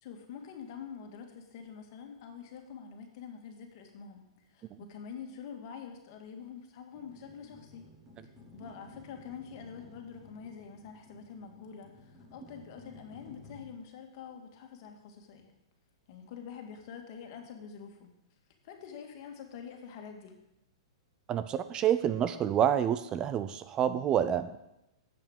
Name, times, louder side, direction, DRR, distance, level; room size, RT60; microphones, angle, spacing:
voice 1, 0.0-7.9 8.2-15.6 16.1-18.1 18.6-20.4, left 7 dB, 50° left, 4 dB, 2.1 m, -46 dB
sound 1, 6.9-13.6, left 2 dB, 10° right, 3.4 m, -54 dB
voice 2, 21.3-24.5, right 9 dB, 30° right, 12 dB, 0.6 m, -28 dB
8.0 x 6.9 x 8.0 m, 0.88 s
hypercardioid pair, 120°, 3 cm